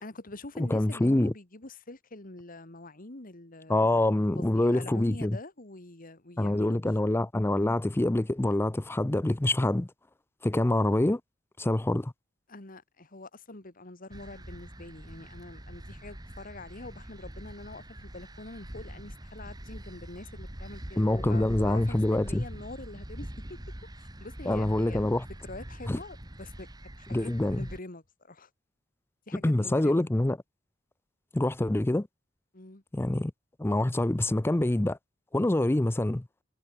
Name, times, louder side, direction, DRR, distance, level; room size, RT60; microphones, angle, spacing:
voice 1, 0.0-4.1 4.4-7.0 12.5-23.6 24.0-25.0 25.4-26.7 27.0-28.5 29.3-30.1 32.5-32.8, left 2 dB, 45° left, 2.2 m, -45 dB
voice 2, 0.6-1.3 3.7-5.4 6.4-9.9 10.4-11.2 11.6-12.1 21.0-22.5 24.5-25.2 25.9-26.0 27.1-27.7 29.3-30.4 31.3-32.1 32.9-33.3 33.6-35.0 35.3-36.3, left 1 dB, 10° left, 0.5 m, -26 dB
sound 1, 14.1-27.8, right 1 dB, 20° right, 2.0 m, -43 dB
head